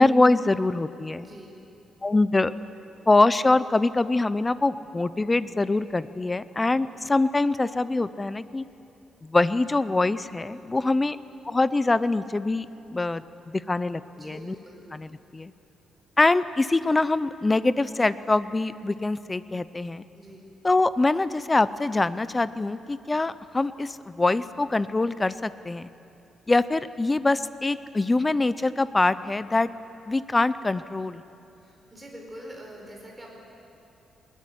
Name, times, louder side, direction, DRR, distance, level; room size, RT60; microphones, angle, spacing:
voice 1, 0.0-1.3 2.0-2.5 3.1-8.6 9.2-11.2 11.4-12.7 12.9-14.6 14.9-15.5 16.2-20.0 20.6-25.9 26.5-29.7 30.1-31.2, left 2 dB, 15° left, 15 dB, 0.5 m, -24 dB
voice 2, 1.2-1.6 10.8-10.9 14.1-14.9 20.1-20.5 31.6-33.4, equal, 10° right, -1 dB, 4.7 m, -44 dB
20.0 x 20.0 x 9.9 m, 2.7 s
cardioid pair, 175°, 0 cm